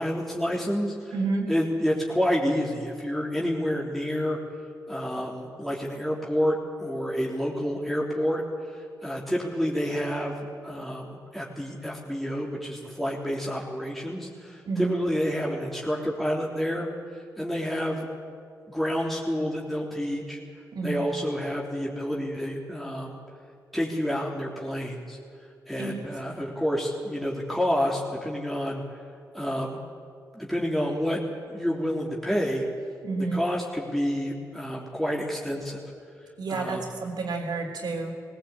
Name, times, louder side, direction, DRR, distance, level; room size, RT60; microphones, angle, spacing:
voice 1, 0.0-1.2 1.5-4.4 4.9-8.4 8.8-16.9 17.4-18.1 18.7-20.4 20.8-23.2 23.7-25.2 25.7-28.8 29.3-29.8 30.3-31.2 31.5-32.7 33.2-35.8 36.5-36.9, equal, ahead, -3 dB, 3.5 m, -29 dB
voice 2, 1.1-1.5 14.7-15.0 20.7-21.0 25.8-25.9 33.0-33.4 36.4-38.1, right 3 dB, 70° right, 2 dB, 3.4 m, -29 dB
18.5 x 17.0 x 8.4 m, 2.3 s
supercardioid pair, 45°, 7 cm